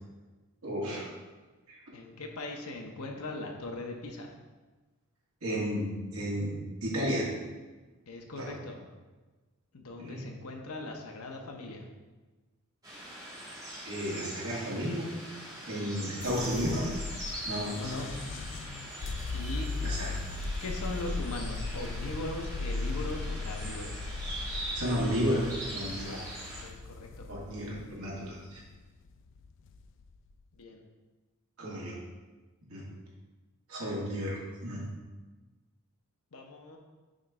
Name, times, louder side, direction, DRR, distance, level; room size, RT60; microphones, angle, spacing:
voice 1, 0.6-1.1 1.7-1.8 5.4-7.2 8.4-8.5 10.0-10.3 13.8-15.1 15.7-16.9 17.4-17.9 19.8-20.1 24.7-25.4 25.7-26.2 27.3-28.6 31.6-32.0 32.7-32.8 33.7-34.8, equal, 70° right, -5 dB, 1.8 m, -33 dB
voice 2, 1.9-4.3 8.1-8.8 9.7-11.8 17.7-18.1 19.3-19.7 20.6-24.1 26.6-27.3 30.5-30.8 36.3-36.8, left 2 dB, 75° left, 2 dB, 0.8 m, -39 dB
sound 1, 12.8-26.6, right 1 dB, 15° right, 1.4 m, -42 dB
sound 2, 16.2-30.4, left 3 dB, 60° left, 0.3 m, -38 dB
6.3 x 3.2 x 4.7 m, 1.3 s
head